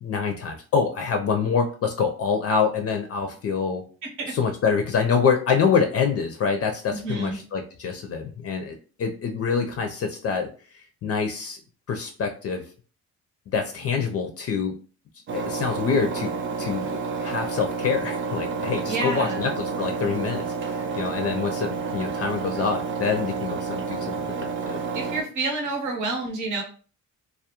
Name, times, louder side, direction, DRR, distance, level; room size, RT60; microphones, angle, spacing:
voice 1, 0.0-3.8 4.3-10.5 11.0-11.6 11.9-12.6 13.5-14.8 15.3-16.3 16.6-24.2 24.4-24.8, left 5 dB, 50° left, 4 dB, 0.4 m, -26 dB
voice 2, 6.9-7.4 18.9-19.5 24.9-26.6, right 2 dB, 80° right, 0 dB, 0.8 m, -28 dB
Engine, 15.3-25.2, right 5 dB, 40° right, 0.4 m, -30 dB
2.3 x 2.0 x 2.8 m, 0.39 s
cardioid pair, 90°, 30 cm